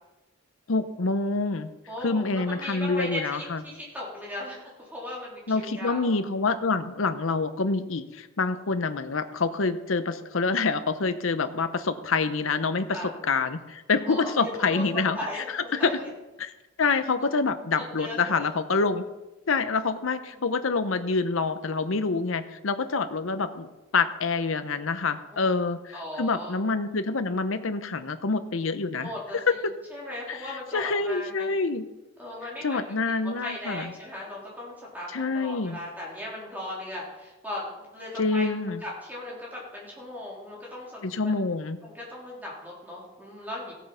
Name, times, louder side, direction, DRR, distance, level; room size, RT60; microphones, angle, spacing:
voice 1, 0.7-1.7 2.0-3.6 5.5-13.0 13.3-15.2 15.5-16.0 16.4-16.5 16.8-19.0 19.5-29.1 29.5-29.6 30.3-31.9 32.6-33.9 35.1-35.8 38.2-38.8 41.0-41.8, left 4 dB, 75° left, 10 dB, 0.8 m, -26 dB
voice 2, 1.9-6.1 12.9-13.1 14.1-16.1 17.8-18.5 20.3-20.4 25.3-25.6 25.9-26.6 29.0-29.4 29.9-31.5 32.2-32.8 33.4-38.5 38.8-41.4 41.8-43.7, left 1 dB, 10° right, -4 dB, 3.7 m, -37 dB
15.0 x 8.4 x 5.7 m, 1.1 s
head